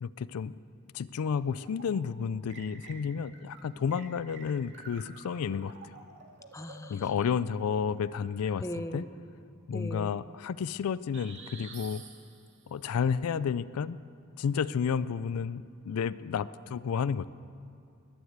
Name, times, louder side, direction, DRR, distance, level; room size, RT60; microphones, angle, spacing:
voice 1, 0.0-0.5 0.9-6.0 6.9-9.0 9.7-12.0 12.7-14.0 14.4-17.3, left 6 dB, 85° left, 17 dB, 0.4 m, -31 dB
sound 1, 1.3-2.1 2.5-9.1 11.1-12.7, right 3 dB, 55° right, 2.2 m, -51 dB
voice 2, 6.5-7.0 8.6-9.1 9.7-10.1, equal, 15° left, 8 dB, 0.6 m, -38 dB
21.0 x 8.1 x 8.1 m, 2.5 s
head